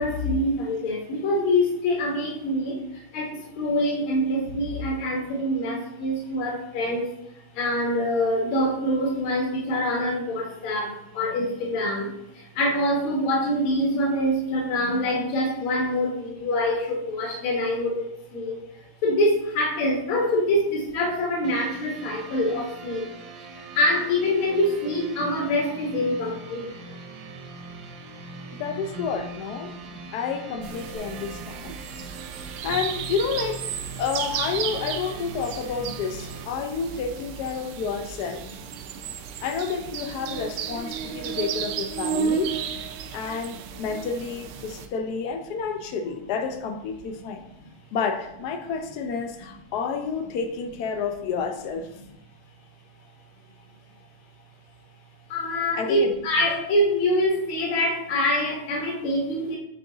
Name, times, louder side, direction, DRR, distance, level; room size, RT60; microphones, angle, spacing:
voice 1, 0.0-2.8 3.1-3.3 3.6-7.0 7.6-12.1 12.6-17.9 18.3-18.5 19.0-23.0 23.8-26.6 55.3-59.6, left 1 dB, 70° left, -2 dB, 2.0 m, -25 dB
sound 1, 21.4-36.4, right 3 dB, 60° right, 1.2 m, -41 dB
voice 2, 28.6-29.7 30.1-31.7 32.6-38.5 39.4-42.5 43.1-47.5 47.9-51.9 55.8-56.2, left 5 dB, 90° left, 6 dB, 0.8 m, -30 dB
sound 2, 30.6-44.9, right 7 dB, 85° right, 1.5 m, -33 dB
7.9 x 3.8 x 3.8 m, 0.87 s
omnidirectional pair, 2.4 m